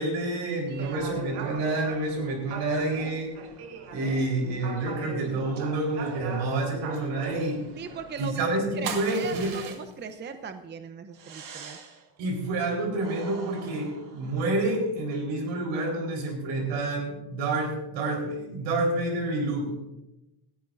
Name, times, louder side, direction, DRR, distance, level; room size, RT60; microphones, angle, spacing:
voice 1, 0.0-3.3 3.9-7.6 8.2-9.5 12.2-19.7, right 2 dB, 85° right, 1 dB, 4.2 m, -28 dB
voice 2, 0.7-1.0 7.8-11.9, right 5 dB, 25° right, 8 dB, 0.7 m, -39 dB
sound 1, 0.7-8.3, right 4 dB, 65° right, 1.9 m, -40 dB
sound 2, 8.8-10.1 11.1-12.1 13.0-14.6, right 6 dB, 50° right, 1.7 m, -40 dB
18.5 x 13.5 x 2.6 m, 0.94 s
cardioid pair, 140°, 42 cm